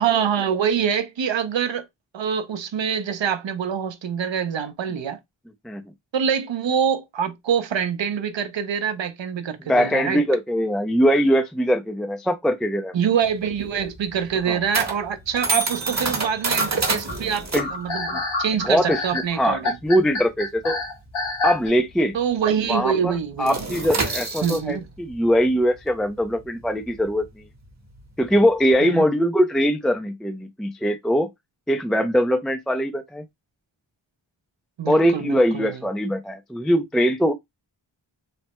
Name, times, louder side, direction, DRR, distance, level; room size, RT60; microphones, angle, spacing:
voice 1, 0.0-1.9 2.1-5.2 6.1-10.2 12.9-17.5 17.7-19.8 22.1-23.6 24.4-24.8 28.8-29.1 34.8-35.8, right 7 dB, 65° right, 0.7 m, -25 dB
voice 2, 9.7-12.9 14.5-14.6 17.5-17.7 18.7-20.8 21.4-22.2 22.7-23.1 23.4-27.4 28.2-31.3 31.7-33.2 34.9-37.3, equal, ahead, 0.3 m, -21 dB
sound 1, 13.2-22.2 22.4-22.7 23.0-28.7, right 3 dB, 35° right, 0.9 m, -29 dB
sound 2, 16.6-21.7, left 2 dB, 75° left, 1.6 m, -27 dB
3.2 x 2.0 x 2.9 m
wide cardioid pair, 55°, 49 cm